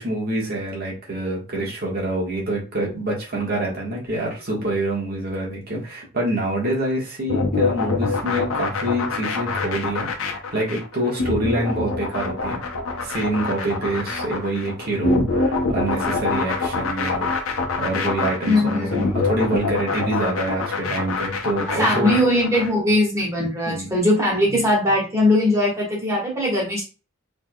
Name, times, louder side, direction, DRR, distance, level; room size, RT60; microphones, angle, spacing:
voice 1, 0.0-12.6 13.0-22.1 23.4-23.9, right 1 dB, 45° right, -3 dB, 1.4 m, -26 dB
sound 1, 7.3-22.7, left 3 dB, 80° left, 0.7 m, -25 dB
voice 2, 18.4-19.1 21.7-26.9, left 1 dB, 15° right, -4 dB, 1.5 m, -20 dB
3.5 x 3.3 x 2.3 m, 0.33 s
head